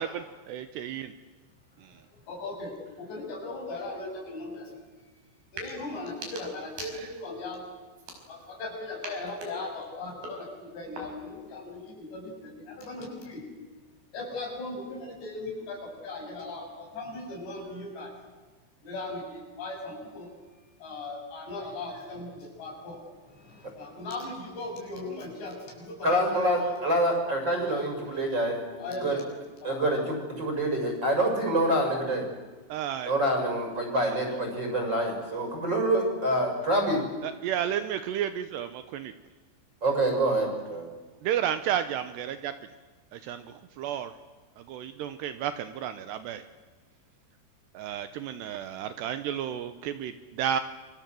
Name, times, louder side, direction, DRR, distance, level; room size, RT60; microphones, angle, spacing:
voice 1, 0.0-1.0 32.7-33.1 37.2-39.1 41.2-42.5 43.1-43.4 43.8-44.1 44.7-46.4 47.8-50.6, right 10 dB, 75° right, 11 dB, 2.9 m, -32 dB
voice 2, 2.1-4.7 5.5-7.6 8.3-13.4 14.1-18.1 18.8-20.3 20.8-23.0 23.6-26.8 28.0-28.1 28.8-29.3 29.6-29.9, left 2 dB, 65° left, 0 dB, 8.8 m, -38 dB
sound 1, 5.4-5.7 6.1-7.4 7.9-8.6 9.0-11.4, right 2 dB, 50° right, 6.7 m, -44 dB
voice 3, 26.0-28.6 29.0-29.1 29.6-32.2 33.0-37.0 39.8-40.9, right 1 dB, 25° right, 2 dB, 7.5 m, -26 dB
28.5 x 24.5 x 7.8 m, 1.4 s
omnidirectional pair, 5.3 m